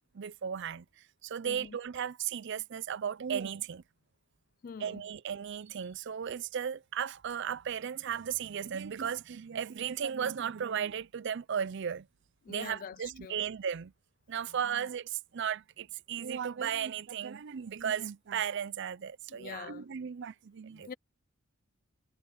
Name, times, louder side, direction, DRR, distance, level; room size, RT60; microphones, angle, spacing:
voice 1, 0.1-0.9 1.2-3.8 4.8-12.1 12.5-13.9 14.3-20.9, right 8 dB, 55° right, 0.4 m, -35 dB
voice 2, 1.4-1.8 4.6-5.0 12.4-13.4 14.5-14.9 19.3-20.0 20.7-20.9, left 6 dB, 40° left, 0.3 m, -45 dB
head